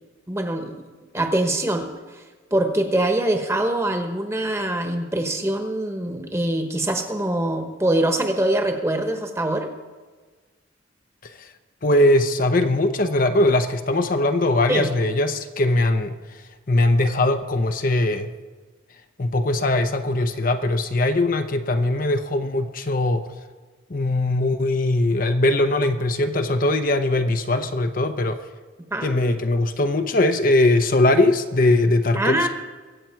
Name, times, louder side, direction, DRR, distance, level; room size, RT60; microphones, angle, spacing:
voice 1, 0.3-0.8 1.1-2.2 2.5-9.7 14.7-14.9 28.9-29.1 32.2-32.5, right 1 dB, 15° right, 5 dB, 1.2 m, -23 dB
voice 2, 11.8-16.4 16.7-18.3 19.2-23.3 23.9-28.4 29.0-32.5, left 2 dB, 45° left, 7 dB, 0.7 m, -20 dB
23.0 x 8.4 x 4.6 m, 1.3 s
head